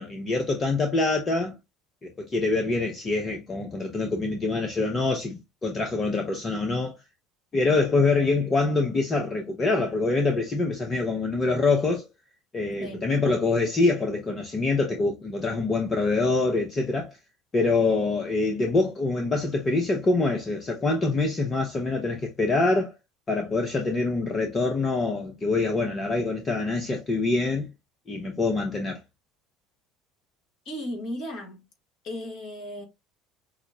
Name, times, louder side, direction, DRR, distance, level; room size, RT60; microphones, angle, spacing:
voice 1, 0.0-1.5 2.0-6.9 7.5-12.1 12.5-17.2 17.5-22.9 23.3-27.7 28.1-29.0, left 3 dB, 25° left, 0.8 m, -25 dB
voice 2, 12.8-13.1 30.6-31.6 32.0-32.9, left 1 dB, 45° left, 1.6 m, -35 dB
5.8 x 2.1 x 2.6 m
figure-of-eight pair, 65°, 0 cm